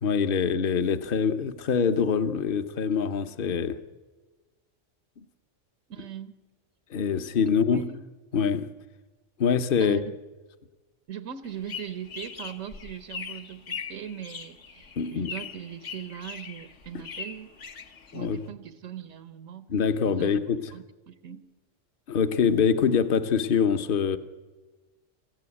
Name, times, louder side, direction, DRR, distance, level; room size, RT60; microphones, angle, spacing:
voice 1, 0.0-3.8 6.9-7.8 8.3-8.7 9.4-10.0 15.0-15.3 18.1-18.4 19.7-20.6 22.1-24.2, left 6 dB, 50° left, 1.1 m, -24 dB
voice 2, 5.9-6.4 7.7-8.0 9.8-10.2 11.1-17.5 18.1-19.7 20.1-21.5, right 9 dB, 90° right, 1.4 m, -40 dB
sound 1, 11.4-18.5, left 6 dB, 65° left, 1.6 m, -40 dB
24.0 x 15.5 x 9.8 m
omnidirectional pair, 1.3 m